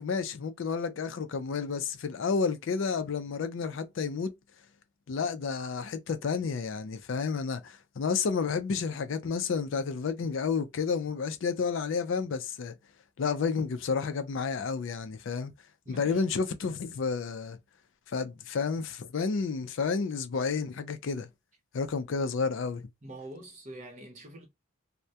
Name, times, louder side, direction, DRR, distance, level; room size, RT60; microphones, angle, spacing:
voice 1, 0.0-4.3 5.1-12.7 13.2-15.5 15.9-17.6 18.1-21.3 21.7-22.8, left 5 dB, 65° left, 0.4 m, -31 dB
voice 2, 15.8-16.2 23.0-24.5, right 1 dB, 35° right, 0.7 m, -45 dB
2.2 x 2.1 x 2.7 m
head